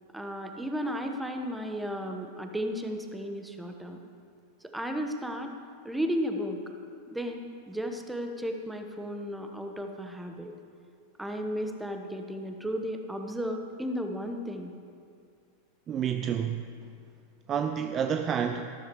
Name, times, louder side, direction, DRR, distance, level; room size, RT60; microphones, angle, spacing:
voice 1, 0.1-4.0 4.7-5.5 5.8-6.6 7.1-10.5 11.2-14.7, equal, 5° right, 4 dB, 1.2 m, -34 dB
voice 2, 15.9-16.7 17.5-18.7, right 8 dB, 30° right, 7 dB, 0.5 m, -29 dB
14.0 x 12.5 x 4.8 m, 2.3 s
figure-of-eight pair, 90°, 0 cm